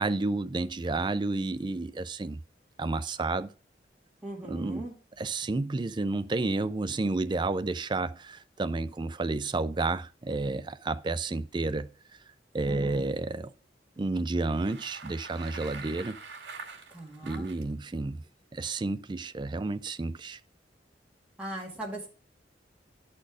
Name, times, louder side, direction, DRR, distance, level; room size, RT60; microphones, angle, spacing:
voice 1, 0.0-2.4 2.8-3.5 4.4-4.9 5.2-11.9 12.5-13.5 14.0-16.2 17.2-18.2 18.5-20.4, right 3 dB, 25° right, 0.4 m, -31 dB
voice 2, 4.2-4.9 12.7-13.1 16.9-17.5 21.4-22.1, right 1 dB, 5° right, 2.2 m, -39 dB
Bicycle, 14.4-17.6, right 4 dB, 75° right, 2.0 m, -45 dB
11.5 x 4.4 x 5.0 m
head